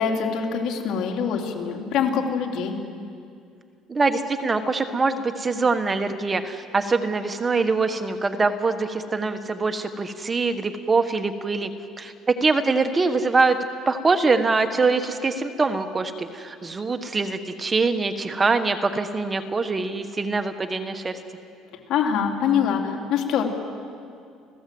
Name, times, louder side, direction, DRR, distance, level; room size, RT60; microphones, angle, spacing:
voice 1, 0.0-2.7 21.9-23.4, left 7 dB, 65° left, 1 dB, 3.4 m, -24 dB
voice 2, 3.9-11.7 12.0-13.6 13.9-21.2, right 3 dB, 20° right, 8 dB, 1.3 m, -23 dB
30.0 x 16.0 x 7.8 m, 2.4 s
cardioid pair, 120°, 0 cm